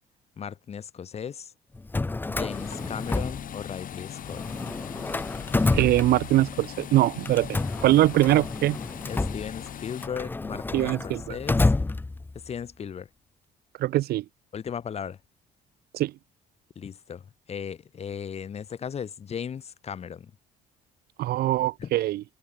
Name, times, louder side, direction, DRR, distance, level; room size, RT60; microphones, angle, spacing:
voice 1, 0.4-1.5 2.3-4.4 9.1-11.7 12.3-13.1 14.5-15.2 16.7-20.3 21.8-21.9, left 7 dB, 40° left, 1.7 m, -36 dB
Drawer open or close, 1.7-3.9 4.2-6.6 7.2-12.5, left 3 dB, 10° left, 0.6 m, -29 dB
sound 1, 2.5-10.1, left 10 dB, 55° left, 5.2 m, -40 dB
voice 2, 5.7-8.8 10.7-11.4 13.8-14.2 15.9-16.1 21.2-22.2, right 15 dB, 70° right, 0.8 m, -22 dB
cardioid pair, 110°, 17 cm